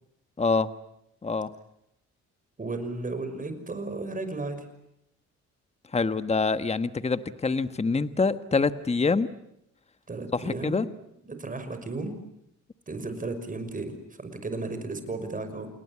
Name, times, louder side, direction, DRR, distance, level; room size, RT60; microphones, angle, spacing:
voice 1, 0.4-0.7 1.2-1.5 5.9-9.3 10.3-10.9, left 4 dB, 20° left, 12 dB, 1.3 m, -25 dB
voice 2, 2.6-4.7 10.1-10.8 11.2-12.2 12.9-15.7, right 3 dB, 25° right, 9 dB, 5.9 m, -34 dB
29.0 x 20.5 x 9.7 m, 0.80 s
cardioid pair, 90°, 30 cm